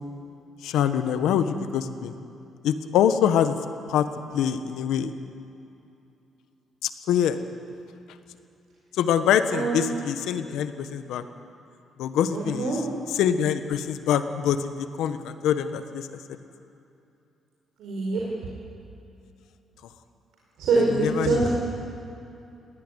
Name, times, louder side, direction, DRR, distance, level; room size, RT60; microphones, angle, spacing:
voice 1, 0.6-2.2 2.6-3.6 3.9-4.1 4.3-5.1 6.8-7.4 9.0-11.2 12.0-12.7 13.2-16.1 21.0-21.5, left 9 dB, 85° left, 10 dB, 1.3 m, -24 dB
voice 2, 9.5-9.9 12.3-12.8 17.8-18.2 20.6-21.5, right 3 dB, 80° right, -3 dB, 4.7 m, -24 dB
20.0 x 17.5 x 9.9 m, 2.7 s
cardioid pair, 90°, 0 cm